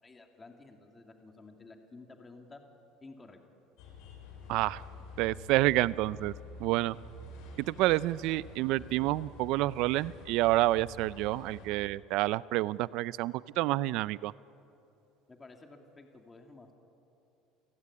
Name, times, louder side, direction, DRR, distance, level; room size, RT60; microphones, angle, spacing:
voice 1, 0.0-2.6 3.0-3.4 15.3-16.7, left 3 dB, 20° left, 3 dB, 2.6 m, -52 dB
sound 1, 3.8-11.7, left 3 dB, 75° left, 6.7 m, -48 dB
voice 2, 4.5-4.8 5.2-6.3 6.6-7.0 7.7-14.3, right 17 dB, 65° right, 19 dB, 0.5 m, -28 dB
29.5 x 16.0 x 9.8 m, 2.9 s
supercardioid pair, 120°, 0 cm